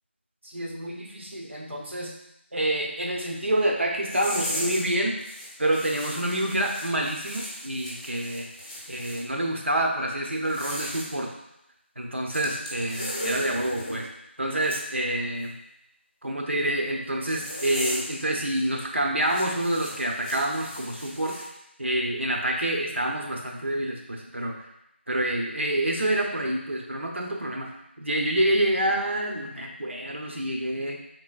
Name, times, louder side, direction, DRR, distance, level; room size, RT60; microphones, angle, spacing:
voice 1, 0.4-2.2 2.5-5.2 5.6-8.5 8.9-11.3 12.0-14.1 14.4-15.6 16.2-21.5 21.8-24.6 25.1-27.7 28.0-31.0, right 1 dB, 70° right, 0 dB, 0.9 m, -27 dB
sound 1, 4.0-4.9 5.2-9.2 10.3-11.1 12.3-14.0 14.6-14.8 17.3-18.2 18.5-18.7 19.2-21.4, equal, 15° left, 0.9 m, -36 dB
4.9 x 3.8 x 2.4 m, 0.82 s
figure-of-eight pair, 170°, 7 cm